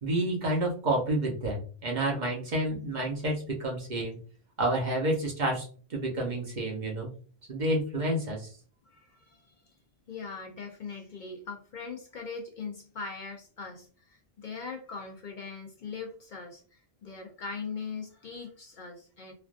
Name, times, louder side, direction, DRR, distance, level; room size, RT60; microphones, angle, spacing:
voice 1, 0.0-4.2 4.6-7.1 7.5-8.5, right 1 dB, 50° right, -1 dB, 0.9 m, -29 dB
voice 2, 8.8-9.7 10.1-19.3, left 5 dB, 55° left, 1 dB, 0.6 m, -41 dB
3.2 x 2.4 x 2.4 m, 0.40 s
omnidirectional pair, 1.1 m